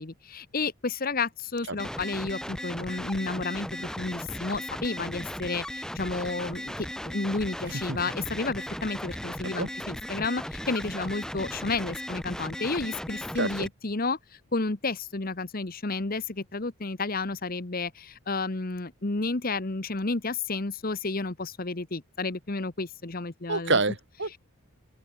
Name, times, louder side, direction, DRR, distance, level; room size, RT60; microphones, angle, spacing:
voice 1, 0.0-23.8, left 3 dB, 40° left, 1.1 m, -31 dB
sound 1, 1.8-13.7, equal, 5° left, 3.3 m, -37 dB
voice 2, 13.4-13.7 23.5-24.4, right 3 dB, 55° right, 2.9 m, -27 dB
open air
head